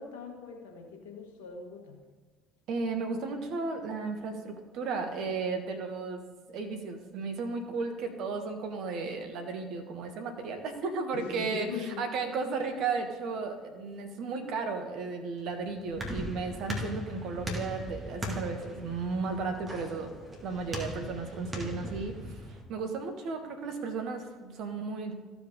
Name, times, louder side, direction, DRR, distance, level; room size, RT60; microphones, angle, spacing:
voice 1, 0.0-2.0 11.1-12.0, left 5 dB, 70° left, 1 dB, 1.5 m, -41 dB
voice 2, 2.7-6.2 6.5-20.1 20.4-22.3 22.7-25.2, right 4 dB, 55° right, 5 dB, 1.3 m, -34 dB
sound 1, 15.4-22.6, equal, 20° right, 2.1 m, -39 dB
14.5 x 5.1 x 3.8 m, 1.4 s
figure-of-eight pair, 55°, 0 cm